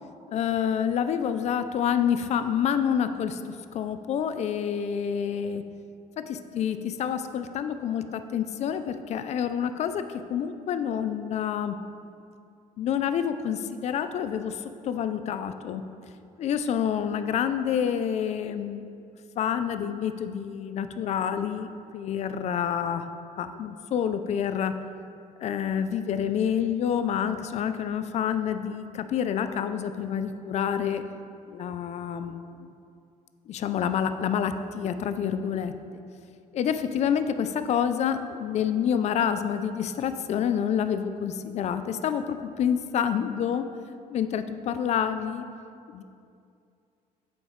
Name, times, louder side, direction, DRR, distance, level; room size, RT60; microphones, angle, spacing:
voice 1, 0.3-5.6 6.2-11.8 12.8-15.8 16.4-18.8 19.4-23.1 23.4-24.8 25.4-31.0 31.5-32.7 33.5-35.7 36.5-43.7 44.1-45.5 45.9-46.0, left 8 dB, 35° left, 10 dB, 0.4 m, -28 dB
6.8 x 4.7 x 3.9 m, 2.5 s
figure-of-eight pair, 50°, 19 cm